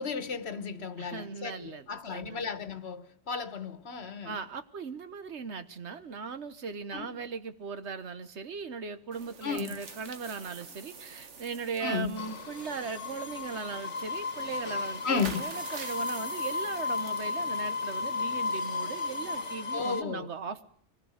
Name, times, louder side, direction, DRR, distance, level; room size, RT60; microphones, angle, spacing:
voice 1, 0.0-4.4 6.9-7.3 9.4-9.8 11.8-12.2 15.0-15.5 19.7-20.3, left 5 dB, 65° left, 1.4 m, -34 dB
voice 2, 1.0-2.4 4.2-20.7, right 5 dB, 75° right, 1.4 m, -38 dB
sound 1, 9.1-19.5, right 5 dB, 90° right, 1.8 m, -48 dB
sound 2, 12.2-20.0, left 4 dB, 85° left, 1.5 m, -34 dB
24.0 x 18.5 x 6.5 m
omnidirectional pair, 1.2 m